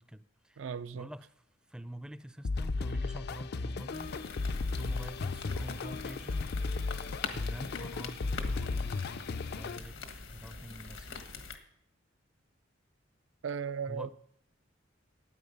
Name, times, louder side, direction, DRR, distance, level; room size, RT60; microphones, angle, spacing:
voice 1, 0.0-0.7 0.9-1.3 1.7-6.6 7.3-11.2 13.9-14.1, right 1 dB, 5° right, 0.4 m, -46 dB
voice 2, 0.6-1.1 13.4-14.1, right 6 dB, 75° right, 0.5 m, -36 dB
sound 1, 2.5-9.8, left 3 dB, 55° left, 0.4 m, -35 dB
sound 2, 3.9-11.6, left 4 dB, 85° left, 1.5 m, -44 dB
13.0 x 9.3 x 5.3 m
head